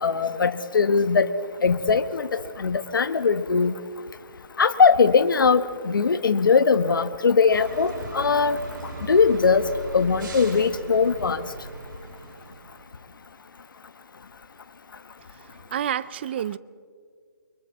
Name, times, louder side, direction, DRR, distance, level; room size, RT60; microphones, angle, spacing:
voice 1, 0.0-1.3 1.6-3.7 4.6-8.6 9.1-9.7 9.9-11.4, left 5 dB, 70° left, 1.2 m, -20 dB
sound 1, 7.5-12.9, right 2 dB, 65° right, 6.1 m, -38 dB
voice 2, 15.3-16.6, right 10 dB, 30° right, 0.5 m, -30 dB
29.5 x 23.0 x 4.1 m
hypercardioid pair, 155°, 12 cm